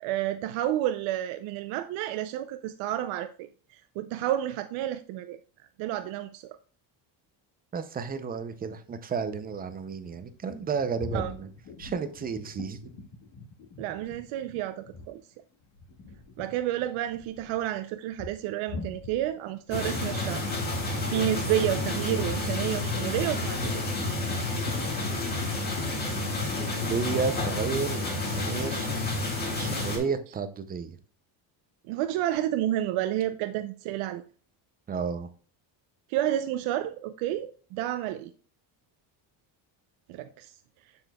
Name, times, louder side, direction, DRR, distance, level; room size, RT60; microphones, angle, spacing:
voice 1, 0.0-6.6 11.1-11.3 13.8-15.2 16.4-20.4 21.1-23.9 31.9-34.2 36.1-38.3 40.1-40.5, right 12 dB, 80° right, 0.6 m, -30 dB
voice 2, 7.7-11.5 11.8-12.8 26.6-28.9 29.5-31.0 34.9-35.3, right 5 dB, 20° right, 0.4 m, -32 dB
sound 1, 9.7-15.2 15.5-27.9, left 3 dB, 65° left, 1.9 m, -44 dB
sound 2, 19.7-30.0, left 2 dB, 20° left, 1.9 m, -30 dB
7.6 x 7.2 x 2.2 m
cardioid pair, 170°, 47 cm